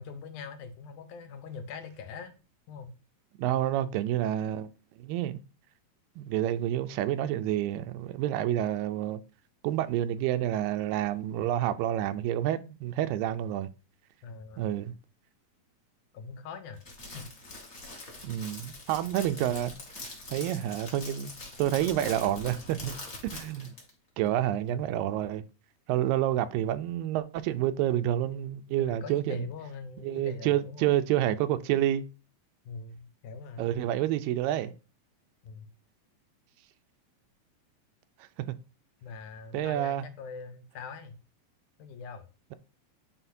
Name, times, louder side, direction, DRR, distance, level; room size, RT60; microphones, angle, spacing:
voice 1, 0.0-2.3 2.7-2.9 14.2-14.7 16.1-16.8 17.1-17.3 24.7-24.9 28.8-30.9 32.7-33.7 35.4-35.7 39.0-41.2 41.8-42.3, left 5 dB, 70° left, 2.2 m, -42 dB
voice 2, 3.4-4.7 5.0-5.4 6.2-9.2 9.6-13.7 14.6-14.9 18.2-19.7 20.3-21.3 21.6-22.9 23.3-23.7 24.2-25.4 25.9-29.4 30.0-32.0 33.6-34.7 38.4-38.6 39.5-40.0, right 12 dB, 85° right, 2.3 m, -28 dB
Crackle, 16.8-23.9, left 2 dB, 25° left, 1.5 m, -43 dB
10.0 x 4.0 x 2.6 m
omnidirectional pair, 4.0 m